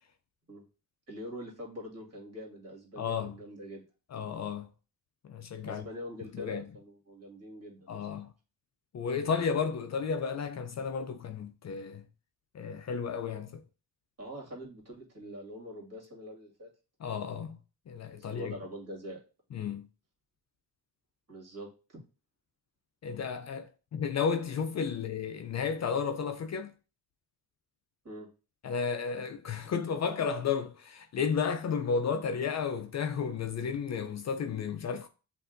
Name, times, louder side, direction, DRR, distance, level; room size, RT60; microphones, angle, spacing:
voice 1, 1.1-3.8 5.6-8.1 14.2-16.7 18.2-19.2 21.3-22.0 28.0-28.3, equal, 40° right, 2.1 m, -44 dB
voice 2, 3.0-3.3 4.1-4.7 5.3-5.9 6.3-6.6 7.9-8.3 8.9-12.0 12.5-13.6 17.0-17.6 17.9-18.5 19.5-19.9 23.0-26.7 28.6-35.1, left 6 dB, 45° left, 0.5 m, -33 dB
7.8 x 2.6 x 2.5 m
cardioid pair, 100°, 38 cm